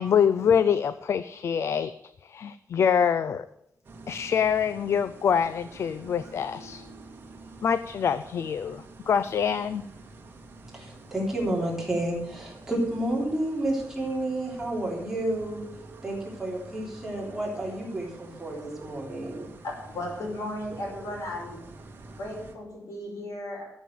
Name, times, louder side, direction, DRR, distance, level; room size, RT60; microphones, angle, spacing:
voice 1, 0.0-1.9 2.2-3.4 4.1-6.8 7.6-9.8, left 7 dB, 55° left, 13 dB, 0.5 m, -25 dB
sound 1, 3.8-22.5, right 2 dB, 35° right, 1.7 m, -47 dB
voice 2, 10.7-15.6 16.0-19.5, right 1 dB, 5° right, -3 dB, 3.4 m, -30 dB
voice 3, 19.6-21.6 22.2-23.7, left 1 dB, 75° left, 0 dB, 5.3 m, -35 dB
13.5 x 7.3 x 7.6 m, 0.76 s
wide cardioid pair, 180°, 6 cm